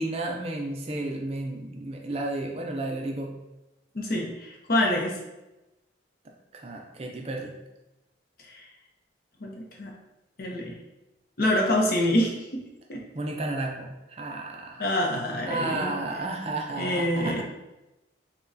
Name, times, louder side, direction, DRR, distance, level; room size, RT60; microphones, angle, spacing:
voice 1, 0.0-3.3 6.2-7.5 13.1-15.0 15.5-17.4, right 2 dB, 30° right, 1 dB, 0.4 m, -32 dB
voice 2, 3.9-5.2 8.4-8.7 9.4-9.9 10.4-10.8 11.4-12.3 12.9-13.0 14.8-15.9 16.8-17.4, left 1 dB, 50° left, 0 dB, 0.7 m, -26 dB
6.0 x 2.2 x 2.6 m, 0.98 s
head